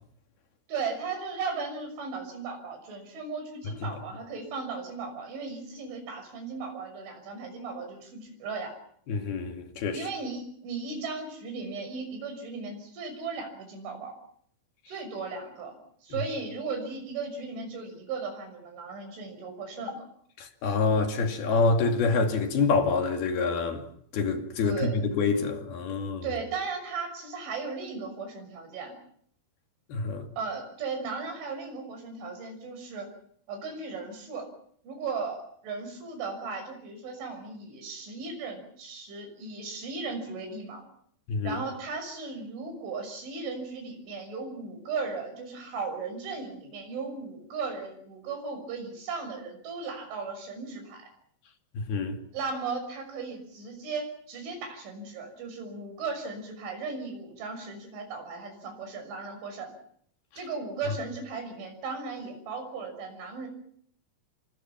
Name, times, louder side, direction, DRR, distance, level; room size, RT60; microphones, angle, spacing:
voice 1, 0.7-8.7 9.9-14.2 14.9-20.1 24.6-24.9 26.2-29.0 30.4-33.1 33.5-34.5 34.8-40.8 41.4-51.1 52.3-59.7 60.4-63.5, right 4 dB, 80° right, 8.6 m, -36 dB
voice 2, 9.1-10.0 20.4-23.8 24.1-24.8 25.1-26.2 29.9-30.3 41.3-41.6 51.7-52.2, left 4 dB, 60° left, 4.1 m, -26 dB
28.5 x 24.5 x 6.0 m
omnidirectional pair, 5.4 m